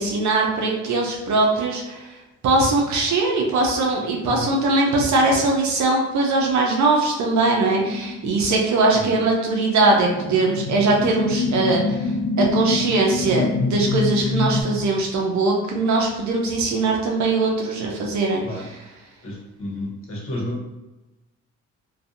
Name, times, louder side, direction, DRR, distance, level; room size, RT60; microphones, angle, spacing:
voice 1, 0.0-2.0 2.4-12.0 12.4-18.4, right 3 dB, 70° right, -1 dB, 0.6 m, -21 dB
sound 1, 7.6-14.6, left 3 dB, 65° left, 0.5 m, -26 dB
voice 2, 8.9-9.3 18.4-18.7 19.2-20.6, left 1 dB, 45° left, -3 dB, 1.0 m, -31 dB
2.6 x 2.3 x 2.5 m, 1.0 s
cardioid pair, 90°, 30 cm